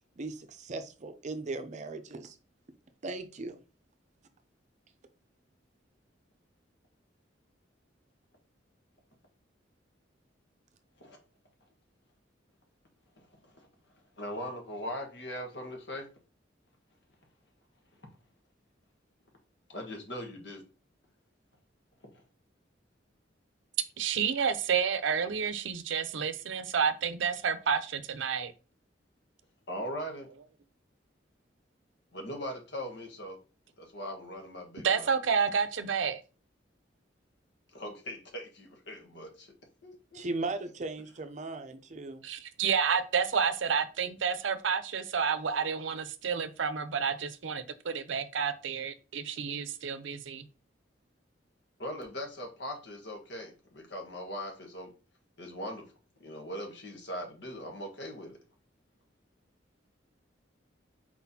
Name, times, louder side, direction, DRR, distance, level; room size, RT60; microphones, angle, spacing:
voice 1, 0.2-2.4 3.0-3.6 40.1-42.2, right 3 dB, 40° right, 0.6 m, -37 dB
voice 2, 14.2-16.1 19.7-20.6 29.7-30.3 32.1-33.4 33.8-35.1 37.7-39.5 39.8-40.2 51.8-54.9 55.4-55.8 56.2-58.4, equal, 65° left, 1.4 m, -40 dB
voice 3, 24.0-28.5 34.8-36.2 42.2-50.4, right 6 dB, 85° right, 0.6 m, -30 dB
4.3 x 4.2 x 2.8 m
head